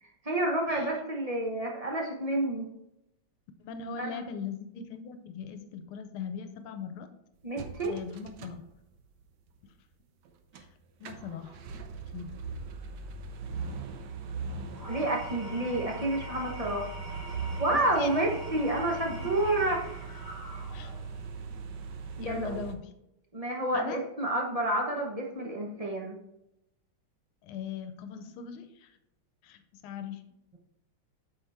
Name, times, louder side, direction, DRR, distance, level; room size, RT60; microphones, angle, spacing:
voice 1, 0.2-2.7 4.0-4.2 7.4-8.0 14.9-16.9 17.6-19.8 22.2-22.6 23.3-26.2, right 1 dB, 30° right, 0 dB, 0.6 m, -29 dB
voice 2, 3.6-7.1 7.9-8.6 10.5-10.7 11.0-11.6 12.1-12.3 17.7-18.3 19.1-19.2 20.7-20.9 22.2-22.9 23.7-24.0 27.4-28.9 29.4-30.2, left 6 dB, 80° left, 9 dB, 1.6 m, -39 dB
sound 1, 7.6-9.2 9.7-9.8 10.3-10.6 10.9-22.7, right 4 dB, 65° right, 1.2 m, -40 dB
Engine / Tools, 14.7-21.1, right 3 dB, 10° right, 3.1 m, -43 dB
8.2 x 6.2 x 3.5 m, 0.86 s
omnidirectional pair, 2.3 m